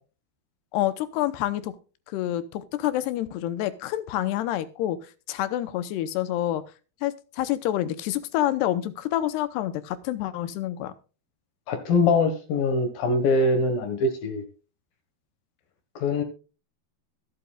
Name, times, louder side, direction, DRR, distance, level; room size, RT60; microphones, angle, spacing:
voice 1, 0.7-1.7 2.1-6.6 7.0-10.9, left 13 dB, 80° left, 13 dB, 2.8 m, -28 dB
voice 2, 11.7-14.4 16.0-16.2, left 3 dB, 65° left, 7 dB, 3.0 m, -23 dB
22.0 x 8.0 x 2.4 m, 0.34 s
omnidirectional pair, 4.9 m